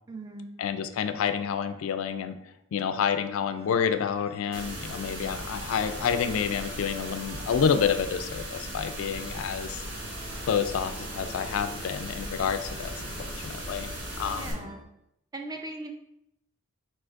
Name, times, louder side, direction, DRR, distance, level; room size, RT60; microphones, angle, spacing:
voice 1, 0.1-0.5 14.3-14.8 15.3-15.9, right 2 dB, 15° right, 5 dB, 0.3 m, -39 dB
voice 2, 0.6-2.4 2.7-9.8 10.5-14.7, left 7 dB, 70° left, 10 dB, 0.3 m, -29 dB
sound 1, 3.5-14.8, equal, 75° right, 1.3 m, -50 dB
sound 2, 4.5-14.5, right 1 dB, 55° right, 1.2 m, -38 dB
5.0 x 3.9 x 2.5 m, 0.81 s
head